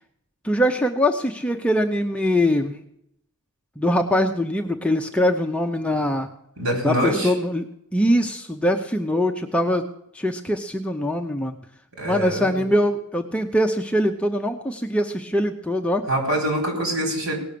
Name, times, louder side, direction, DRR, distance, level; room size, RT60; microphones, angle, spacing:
voice 1, 0.4-2.8 3.8-6.3 6.8-7.7 7.9-9.9 10.1-11.6 12.0-16.0, left 1 dB, 5° left, 3 dB, 0.6 m, -22 dB
voice 2, 6.6-7.3 12.0-12.6 16.1-17.4, right 1 dB, 65° right, 1 dB, 4.4 m, -24 dB
18.0 x 6.3 x 6.8 m, 0.75 s
head